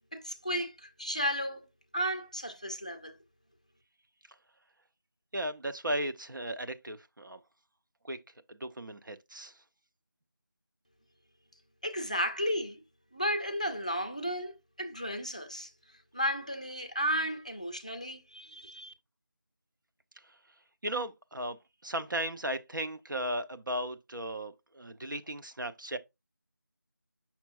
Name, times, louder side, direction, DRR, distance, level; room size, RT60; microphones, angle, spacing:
voice 1, 0.1-1.7 1.9-3.2 11.8-12.8 13.1-15.7 16.1-18.9, equal, 20° left, 0.5 m, -33 dB
voice 2, 5.3-7.4 8.0-8.2 8.5-9.6 20.2-20.4 20.8-26.0, right 1 dB, 70° right, 0.9 m, -36 dB
6.8 x 6.0 x 2.4 m
figure-of-eight pair, 175°, 11 cm